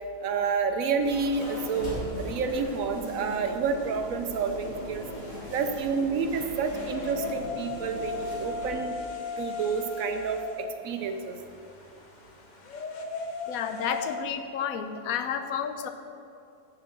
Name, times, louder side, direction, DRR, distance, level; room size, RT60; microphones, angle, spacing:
voice 1, 0.2-5.0 5.5-9.0 9.4-11.3, right 5 dB, 70° right, 7 dB, 0.9 m, -29 dB
sound 1, 1.0-8.7, left 1 dB, 20° left, 2.0 m, -39 dB
sound 2, 3.7-14.2, left 3 dB, 50° left, 0.5 m, -39 dB
voice 2, 13.5-15.9, left 8 dB, 70° left, 8 dB, 1.0 m, -31 dB
6.6 x 6.2 x 7.4 m, 2.7 s
omnidirectional pair, 1.7 m